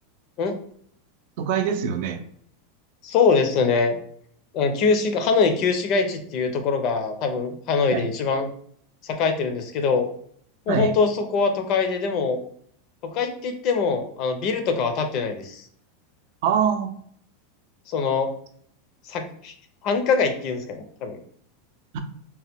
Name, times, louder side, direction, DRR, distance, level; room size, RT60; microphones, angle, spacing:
voice 1, 1.4-2.2 7.9-8.1 10.7-10.9 16.4-16.9 21.9-22.0, right 7 dB, 60° right, 7 dB, 0.4 m, -24 dB
voice 2, 3.0-4.0 4.5-8.5 9.0-10.1 10.7-12.4 13.0-15.6 17.9-18.3 19.1-19.5 19.8-21.2, left 5 dB, 45° left, 7 dB, 0.5 m, -23 dB
2.9 x 2.1 x 3.4 m, 0.62 s
supercardioid pair, 135°, 0 cm